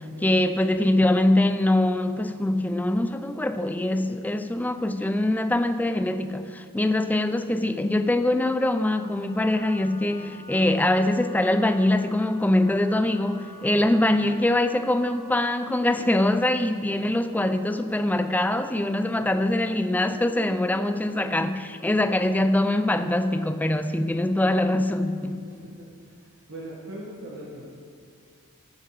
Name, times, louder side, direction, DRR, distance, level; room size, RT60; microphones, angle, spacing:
voice 1, 0.2-25.4, left 1 dB, 5° left, 9 dB, 0.4 m, -23 dB
Wind instrument woodwind instrument, 9.0-16.0, left 1 dB, 25° left, 2.1 m, -48 dB
voice 2, 19.0-19.3 20.3-20.5 25.4-26.2 26.5-27.7, right 1 dB, 55° right, -5 dB, 1.6 m, -41 dB
14.0 x 7.3 x 4.8 m, 2.2 s
head